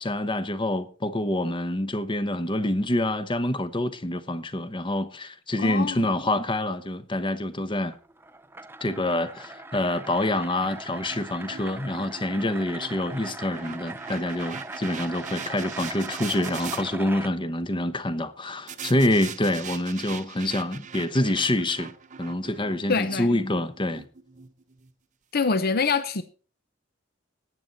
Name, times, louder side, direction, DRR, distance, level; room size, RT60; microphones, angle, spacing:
voice 1, 0.0-8.0 8.8-21.9 22.2-24.0, left 1 dB, 25° left, 1.0 m, -26 dB
voice 2, 5.6-6.1 22.9-23.3 25.3-26.2, left 4 dB, 50° left, 0.8 m, -25 dB
sound 1, 7.9-17.3, right 2 dB, 10° right, 0.5 m, -40 dB
sound 2, 10.6-16.8 18.7-24.9, right 6 dB, 40° right, 0.8 m, -41 dB
18.5 x 7.8 x 4.1 m
head